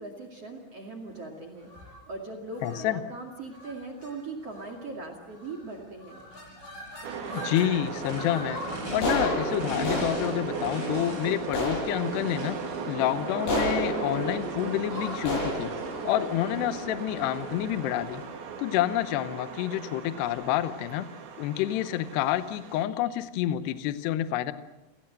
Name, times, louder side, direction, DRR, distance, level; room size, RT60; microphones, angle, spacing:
voice 1, 0.0-1.7 2.1-6.2, right 3 dB, 40° right, 4 dB, 2.5 m, -40 dB
sound 1, 1.6-2.0 2.5-2.8 3.5-3.7 4.0-4.1 4.4-4.8 5.4-5.7 6.0-7.7 8.1-17.3, left 1 dB, 60° left, 10.5 m, -34 dB
voice 2, 2.6-3.0 7.3-8.6 8.9-12.6 12.9-15.7 16.0-18.2 18.6-21.1 21.4-24.5, left 12 dB, 75° left, 12 dB, 2.6 m, -28 dB
Race car auto racing / Idling / Accelerating revving vroom, 6.2-18.2, equal, 20° left, 7.2 m, -43 dB
sound 2, 7.0-22.8, right 6 dB, 65° right, 4.7 m, -37 dB
29.0 x 17.5 x 7.7 m, 1.0 s
omnidirectional pair, 5.7 m